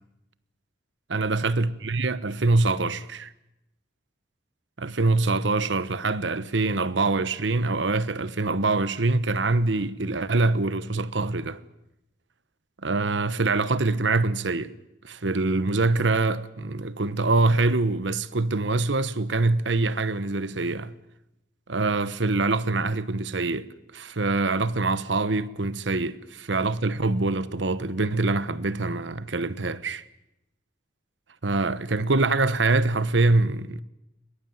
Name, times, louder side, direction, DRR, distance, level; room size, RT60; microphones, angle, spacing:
voice 1, 1.1-3.3 4.8-11.6 12.8-14.7 15.0-20.9 21.7-23.6 23.9-30.0 31.4-33.8, right 3 dB, 90° right, 1.1 m, -24 dB
22.0 x 21.0 x 9.2 m
head